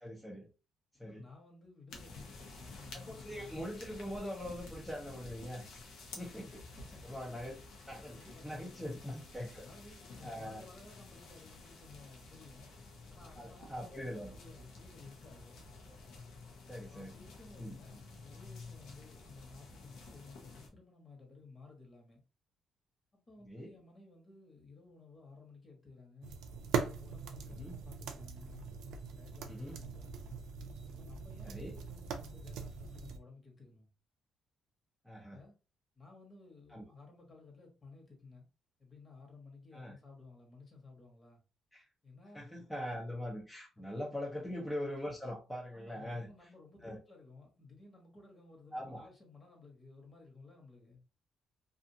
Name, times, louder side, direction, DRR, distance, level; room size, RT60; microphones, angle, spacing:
voice 1, 0.0-0.5 1.0-1.3 2.9-5.7 6.2-6.5 7.1-7.6 7.9-8.2 8.4-9.7 10.2-10.6 13.4-14.3 16.7-17.1 17.6-17.7 23.5-23.7 27.6-27.8 29.5-29.8 31.4-31.8 35.0-35.4 36.7-36.9 39.7-39.9 41.7-41.8 42.3-46.3 46.8-47.0 48.7-49.1, left 1 dB, 5° left, 0.7 m, -42 dB
voice 2, 1.0-3.6 6.2-7.2 8.1-9.2 9.6-12.7 13.1-15.6 16.9-22.2 23.1-26.4 26.8-28.8 29.1-30.4 30.9-33.9 35.3-35.5 35.9-38.5 38.8-41.4 42.0-42.4 43.8-43.9 45.7-51.0, left 3 dB, 35° left, 1.3 m, -56 dB
sound 1, 1.9-20.7, left 3 dB, 80° left, 0.8 m, -52 dB
sound 2, 26.2-33.2, right 6 dB, 85° right, 0.4 m, -41 dB
2.5 x 2.5 x 2.7 m
cardioid pair, 90°, 0 cm